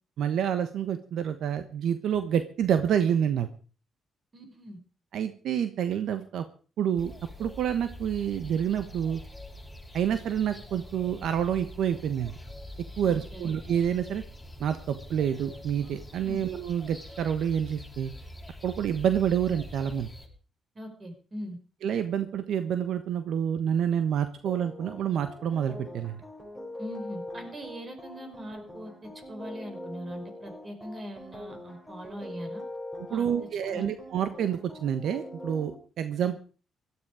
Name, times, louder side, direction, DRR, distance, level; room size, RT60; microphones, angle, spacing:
voice 1, 0.2-3.5 5.1-6.4 6.8-7.1 7.4-9.2 9.9-12.3 13.0-14.2 14.6-18.1 18.6-20.1 21.8-26.2 33.1-35.7 36.0-36.4, right 9 dB, 75° right, 10 dB, 1.2 m, -28 dB
voice 2, 4.3-4.8 13.0-13.5 16.2-16.4 20.8-21.6 26.8-32.6 33.1-33.3 33.7-33.9, equal, 30° right, 5 dB, 5.2 m, -41 dB
sound 1, 7.0-20.3, left 1 dB, 5° left, 6.5 m, -44 dB
sound 2, 24.4-35.7, left 1 dB, 10° right, 6.5 m, -43 dB
17.0 x 13.0 x 5.0 m, 0.38 s
cardioid pair, 90°, 0 cm